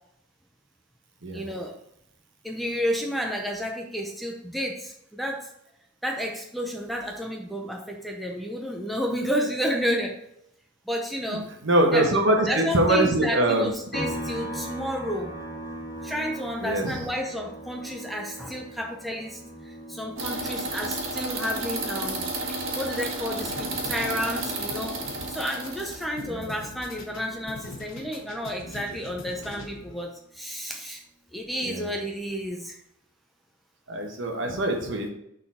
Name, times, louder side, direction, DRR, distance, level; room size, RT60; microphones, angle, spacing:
voice 1, 1.3-1.7 2.4-5.5 6.0-10.1 10.9-11.5 11.9-12.0 12.5-15.3 16.0-19.4 19.7-22.2 22.7-25.0 25.3-31.0 31.3-32.7, equal, ahead, 0 dB, 0.6 m, -31 dB
voice 2, 11.3-13.7 16.6-17.0 26.2-26.5 31.6-31.9 33.9-35.1, right 1 dB, 60° right, 2 dB, 1.2 m, -23 dB
sound 1, 13.9-27.5 27.8-30.0, right 1 dB, 50° left, 1.6 m, -41 dB
sound 2, 20.2-26.0, right 2 dB, 80° right, 1.4 m, -32 dB
sound 3, 23.4-30.0, left 2 dB, 85° left, 1.0 m, -43 dB
6.5 x 4.0 x 4.2 m, 0.77 s
head